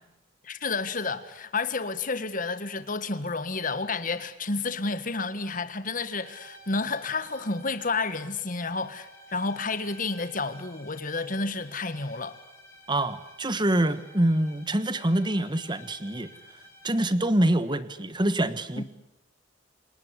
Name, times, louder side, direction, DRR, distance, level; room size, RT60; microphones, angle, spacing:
voice 1, 0.4-12.4 18.8-18.9, left 3 dB, 45° left, 11 dB, 1.7 m, -30 dB
sound 1, 6.2-17.3, left 1 dB, 15° left, 5.3 m, -52 dB
voice 2, 12.9-16.3 16.8-18.8, right 1 dB, 25° right, 13 dB, 1.3 m, -25 dB
28.0 x 19.5 x 9.7 m, 0.95 s
head